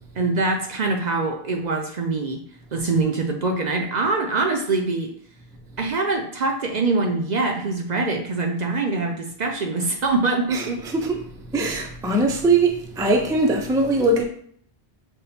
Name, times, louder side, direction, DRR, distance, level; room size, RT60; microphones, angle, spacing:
voice 1, 0.2-2.4 2.7-5.1 5.8-10.8, right 3 dB, 55° right, 0.6 m, -24 dB
voice 2, 10.5-14.2, right 2 dB, 5° right, 0.3 m, -21 dB
5.3 x 2.2 x 4.2 m
omnidirectional pair, 1.0 m